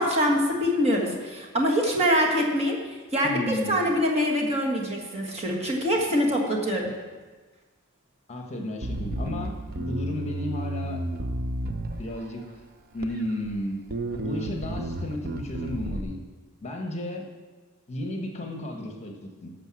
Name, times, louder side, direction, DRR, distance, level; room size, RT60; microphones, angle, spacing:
voice 1, 0.0-6.9, equal, 30° right, -1 dB, 1.7 m, -24 dB
voice 2, 3.2-3.8 8.3-11.0 12.0-12.6 12.9-13.8 14.2-16.2 16.6-17.3 17.9-19.5, left 1 dB, 30° left, 2 dB, 1.3 m, -33 dB
Bass guitar, 8.8-12.4 13.0-13.6 13.9-16.0, right 1 dB, 45° right, 0.7 m, -32 dB
12.0 x 6.8 x 6.2 m, 1.3 s
head